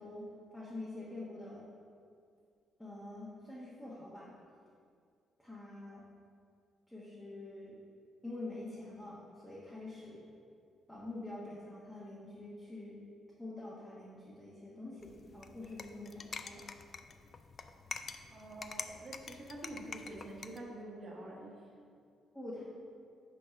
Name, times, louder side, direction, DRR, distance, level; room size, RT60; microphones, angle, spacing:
voice 1, 0.0-1.6 2.8-4.3 5.4-6.0 6.9-7.8 8.2-10.2 10.9-13.0 13.4-16.6 22.3-22.6, left 2 dB, 10° left, -7 dB, 1.3 m, -46 dB
sound 1, 15.0-20.6, left 5 dB, 45° left, 0.3 m, -47 dB
voice 2, 18.3-21.7, right 1 dB, 35° right, -3 dB, 1.4 m, -47 dB
5.4 x 4.1 x 5.8 m, 2.3 s
cardioid pair, 90°, 0 cm